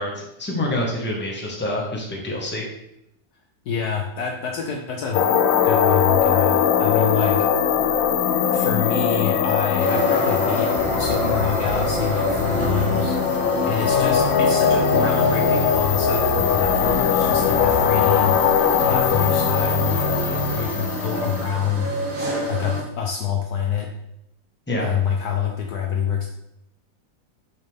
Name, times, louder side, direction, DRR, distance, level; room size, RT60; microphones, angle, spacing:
voice 1, 0.0-2.7 24.7-24.9, left 1 dB, 5° left, -2 dB, 1.2 m, -27 dB
voice 2, 3.7-5.2 5.6-7.5 8.5-13.2 13.7-18.4 18.8-21.9 22.5-23.9 24.8-26.3, left 7 dB, 65° left, 2 dB, 1.1 m, -26 dB
sound 1, 5.1-21.5, left 8 dB, 85° left, 1.4 m, -21 dB
sound 2, 9.8-22.8, right 2 dB, 60° right, 1.8 m, -30 dB
sound 3, 10.8-13.5 13.8-18.5 18.8-20.6, right 2 dB, 35° right, 1.6 m, -30 dB
6.4 x 6.4 x 3.5 m, 0.82 s
omnidirectional pair, 2.0 m